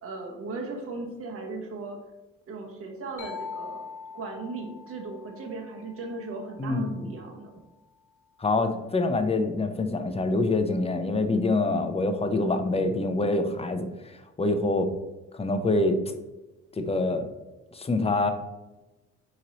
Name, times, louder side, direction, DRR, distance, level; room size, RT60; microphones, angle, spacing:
voice 1, 0.0-2.0 2.5-3.8 4.1-7.5, right 3 dB, 50° right, 1 dB, 1.0 m, -37 dB
sound 1, 3.2-6.9, left 5 dB, 80° left, 0.8 m, -43 dB
voice 2, 6.6-7.1 8.4-13.9 14.4-14.9 15.3-16.0 16.8-17.3 17.7-18.3, left 2 dB, 20° left, 7 dB, 0.6 m, -25 dB
4.3 x 3.1 x 3.9 m, 1.1 s
cardioid pair, 90°, 30 cm